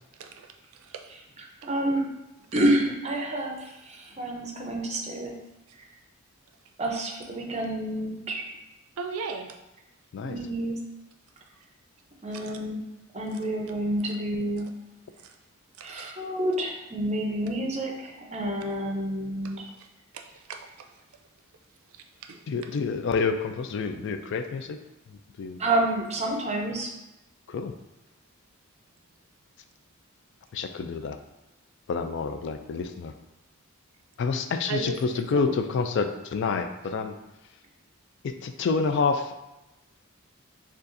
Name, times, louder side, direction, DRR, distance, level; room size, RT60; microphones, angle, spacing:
voice 1, 1.6-2.1 2.5-5.3 6.8-8.4 10.2-10.8 12.2-12.8 13.1-14.7 15.8-19.6 25.6-26.9, right 1 dB, 30° right, 1 dB, 0.6 m, -28 dB
voice 2, 9.0-9.5 12.4-12.5 15.8-16.1 19.8-19.9 20.1-20.2 20.5-20.6 21.9-22.4 34.7-35.0 35.4-35.5, right 4 dB, 80° right, 4 dB, 0.5 m, -36 dB
voice 3, 22.5-24.8 25.1-25.6 27.5-27.7 30.5-31.2 31.9-33.1 34.2-37.1 38.2-39.3, left 4 dB, 55° left, 8 dB, 0.3 m, -28 dB
6.7 x 2.4 x 2.6 m, 0.95 s
head